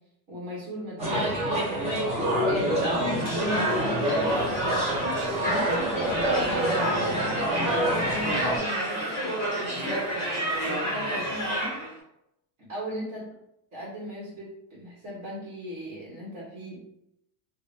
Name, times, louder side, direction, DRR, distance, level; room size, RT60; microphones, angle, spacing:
voice 1, 0.3-4.8 5.4-11.8 12.6-13.3 13.7-16.9, equal, 30° right, -6 dB, 1.0 m, -38 dB
sound 1, 1.0-8.6, right 1 dB, 15° right, 0.4 m, -27 dB
sound 2, 3.2-11.9, right 1 dB, 20° left, 1.3 m, -29 dB
3.3 x 2.1 x 4.0 m, 0.81 s
cardioid pair, 175°, 47 cm